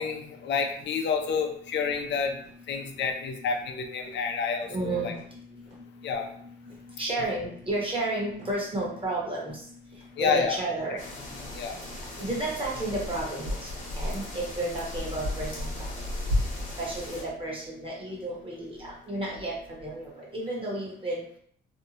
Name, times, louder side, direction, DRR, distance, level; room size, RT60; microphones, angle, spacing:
voice 1, 0.0-2.4 2.7-5.1 6.0-6.3 10.2-10.6 11.5-11.8, left 5 dB, 65° left, 4 dB, 0.5 m, -29 dB
sound 1, 1.9-20.1, left 1 dB, 65° right, 1.2 m, -40 dB
voice 2, 4.7-5.2 7.0-9.6 10.2-11.0 12.2-13.7 14.0-15.9 16.8-21.2, right 2 dB, 25° right, -4 dB, 1.1 m, -32 dB
sound 2, 11.0-17.2, left 1 dB, 40° left, 1.0 m, -37 dB
2.7 x 2.1 x 2.8 m, 0.62 s
cardioid pair, 90°, 20 cm